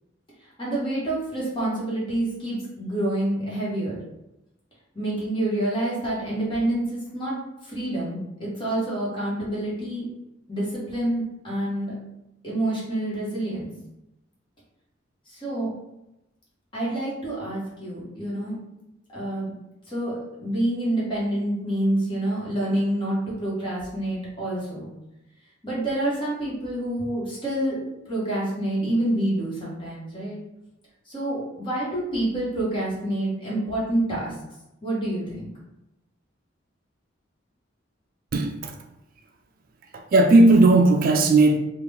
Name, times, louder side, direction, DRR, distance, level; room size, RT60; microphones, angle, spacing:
voice 1, 0.6-4.0 4.9-7.4 7.6-10.1 10.5-11.9 12.4-13.7 15.3-15.7 16.7-18.6 19.1-19.5 19.9-24.9 25.6-30.4 31.1-34.3 34.8-35.5, right 1 dB, 25° left, -6 dB, 1.4 m, -27 dB
voice 2, 38.3-38.7 39.9-41.6, right 2 dB, 50° right, 4 dB, 0.3 m, -16 dB
3.7 x 2.5 x 3.5 m, 0.90 s
head